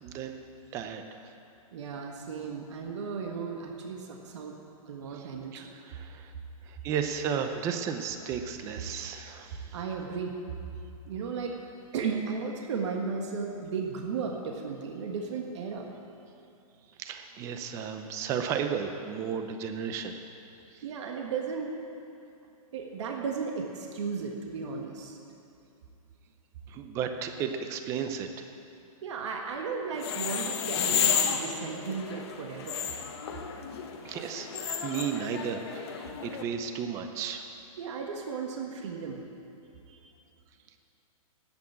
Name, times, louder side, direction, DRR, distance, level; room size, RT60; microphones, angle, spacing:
voice 1, 0.0-0.5 0.7-1.2 5.1-6.3 6.6-9.8 17.0-20.2 20.7-20.8 26.7-28.5 34.0-37.5, right 7 dB, 15° right, 6 dB, 0.6 m, -34 dB
voice 2, 1.7-4.5 4.9-5.7 9.7-10.3 11.0-11.5 11.9-15.9 20.8-21.7 22.7-25.2 29.0-32.8 37.8-39.3 39.9-40.1, right 5 dB, 50° right, 1 dB, 1.6 m, -35 dB
sound 1, 29.9-36.4, left 7 dB, 45° left, 1.2 m, -32 dB
11.5 x 8.6 x 8.7 m, 2.7 s
hypercardioid pair, 165°, 19 cm